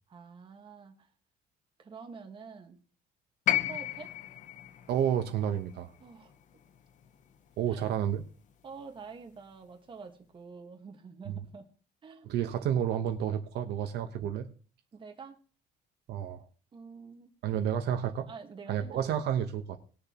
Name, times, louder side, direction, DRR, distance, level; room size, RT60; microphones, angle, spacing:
voice 1, 0.1-1.1 1.8-2.8 3.7-4.1 6.0-6.3 7.7-7.8 8.6-11.7 12.0-12.3 14.9-15.4 16.7-17.3 18.3-19.1, right 5 dB, 30° right, 4 dB, 1.4 m, -47 dB
sound 1, 3.5-7.6 8.8-8.9, left 12 dB, 45° left, 0.7 m, -34 dB
voice 2, 4.9-5.9 7.6-8.2 11.3-11.4 12.2-14.5 16.1-16.5 17.4-18.3 18.7-19.8, right 9 dB, 70° right, 6 dB, 1.0 m, -30 dB
20.0 x 6.9 x 2.9 m, 0.38 s
cardioid pair, 160°, 18 cm